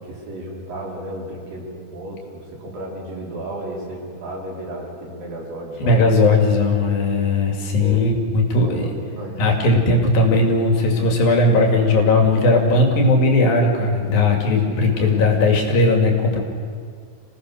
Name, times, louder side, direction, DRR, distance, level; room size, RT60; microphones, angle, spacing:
voice 1, 0.0-6.1 7.8-8.1 8.5-9.4 14.4-15.3, right 1 dB, 80° right, -3 dB, 6.0 m, -34 dB
voice 2, 5.8-8.9 9.4-16.4, left 2 dB, 90° left, 2 dB, 4.3 m, -17 dB
26.5 x 17.5 x 6.5 m, 2.2 s
omnidirectional pair, 4.0 m